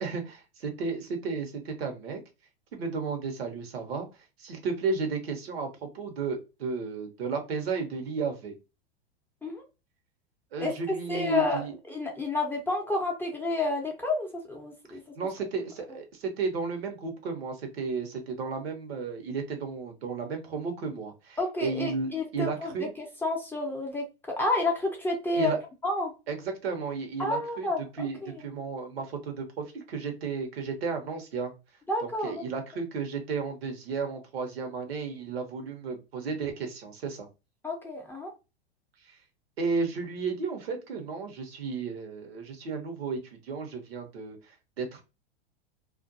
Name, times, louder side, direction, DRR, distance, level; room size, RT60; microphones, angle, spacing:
voice 1, 0.0-2.2 2.7-4.1 4.4-8.5 10.5-11.7 14.9-22.9 25.3-25.6 26.3-31.5 32.0-37.3 39.1-39.2 39.6-45.0, right 4 dB, 70° right, 5 dB, 1.0 m, -33 dB
voice 2, 11.1-15.0 21.4-25.5 25.8-26.1 27.2-28.3 31.9-32.4 37.6-38.3, left 2 dB, 5° left, 0 dB, 0.6 m, -30 dB
2.5 x 2.2 x 2.6 m, 0.27 s
hypercardioid pair, 105°, 31 cm